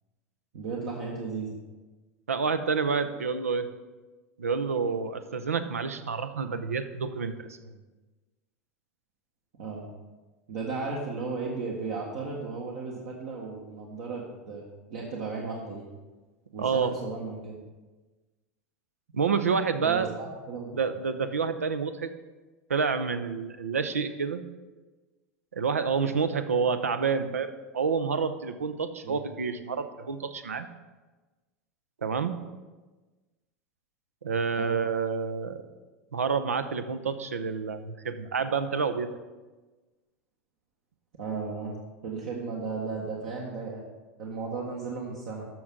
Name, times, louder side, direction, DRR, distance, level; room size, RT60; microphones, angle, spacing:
voice 1, 0.5-1.6 9.6-9.9 10.5-14.6 14.9-15.9 16.5-17.6 19.8-20.7 29.0-29.2 34.6-34.7 41.2-41.8 42.0-43.8 44.2-45.5, right 4 dB, 60° right, -2 dB, 1.5 m, -35 dB
voice 2, 2.3-3.7 4.4-7.8 16.6-16.9 19.1-20.1 20.7-22.1 22.7-24.4 25.5-30.7 32.0-32.4 34.2-35.6 36.1-39.1, right 5 dB, 85° right, 11 dB, 0.6 m, -28 dB
13.0 x 6.1 x 3.8 m, 1.2 s
hypercardioid pair, 90°, 8 cm